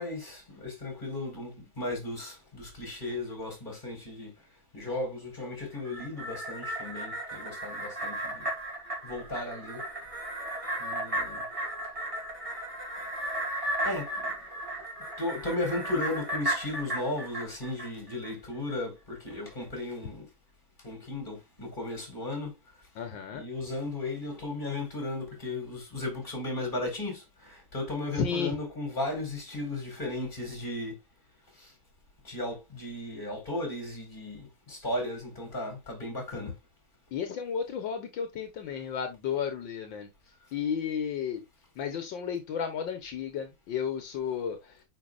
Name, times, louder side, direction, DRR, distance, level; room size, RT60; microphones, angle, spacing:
voice 1, 0.0-4.3 4.7-8.5 9.0-9.9 10.8-11.5 13.8-14.6 15.2-20.3 20.8-22.6 23.3-31.0 31.5-31.7 32.2-36.5, left 2 dB, 25° left, 4.6 m, -35 dB
sound 1, 5.8-18.3 18.7-18.8, right 1 dB, 15° right, 3.2 m, -35 dB
voice 2, 23.0-23.4 28.2-28.6 37.1-40.1 40.5-41.4 41.8-44.7, left 7 dB, 75° left, 1.8 m, -33 dB
9.1 x 5.2 x 2.4 m
omnidirectional pair, 2.1 m